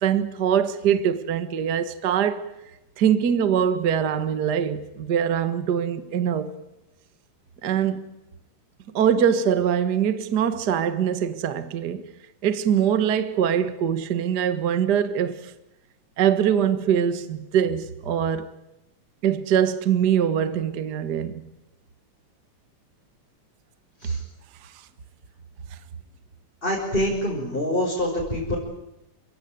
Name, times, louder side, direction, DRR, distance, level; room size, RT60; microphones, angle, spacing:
voice 1, 0.0-2.5 3.0-6.5 7.6-8.1 8.9-12.0 12.4-15.5 16.2-18.5 19.2-21.4, right 8 dB, 45° right, 1.3 m, -23 dB
voice 2, 26.6-28.6, left 1 dB, 15° left, 5.6 m, -25 dB
29.0 x 17.0 x 9.4 m
omnidirectional pair, 3.7 m